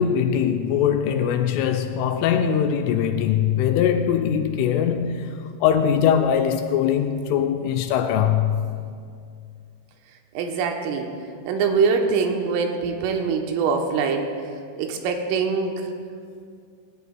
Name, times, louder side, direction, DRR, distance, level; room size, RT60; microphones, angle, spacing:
voice 1, 0.0-8.7, left 8 dB, 85° left, 2.9 m, -21 dB
voice 2, 10.3-11.1 11.5-14.3 14.8-15.9, right 5 dB, 85° right, 3.3 m, -23 dB
18.0 x 17.5 x 2.2 m
omnidirectional pair, 5.9 m